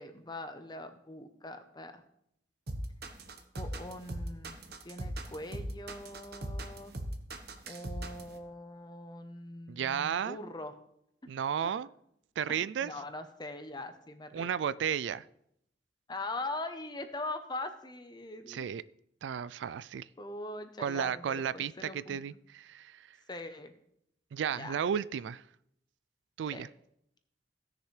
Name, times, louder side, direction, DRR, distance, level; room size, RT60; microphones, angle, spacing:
voice 1, 0.0-2.0 3.5-6.9 7.7-10.7 11.6-11.7 12.5-14.5 16.1-18.7 20.2-22.2 23.3-23.7 24.5-24.8 26.5-26.6, left 2 dB, 25° left, 9 dB, 0.8 m, -42 dB
sound 1, 2.7-8.3, right 1 dB, 60° right, 1.1 m, -39 dB
voice 2, 9.7-10.4 11.3-11.9 12.4-12.9 14.3-15.3 18.5-18.8 19.2-20.1 20.8-23.0 24.3-25.4 26.4-26.7, right 8 dB, 85° right, 17 dB, 0.3 m, -33 dB
16.5 x 6.7 x 3.3 m, 0.76 s
head